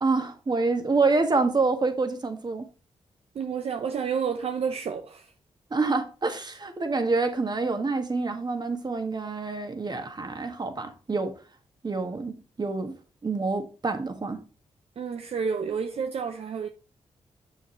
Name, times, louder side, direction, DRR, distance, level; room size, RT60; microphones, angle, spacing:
voice 1, 0.0-2.7 5.7-11.3 11.8-13.0 13.2-14.4, right 3 dB, 40° right, 1.7 m, -27 dB
voice 2, 3.3-5.3 15.0-16.7, right 6 dB, 65° right, 0.7 m, -30 dB
7.3 x 6.6 x 3.1 m
cardioid pair, 55°, 11 cm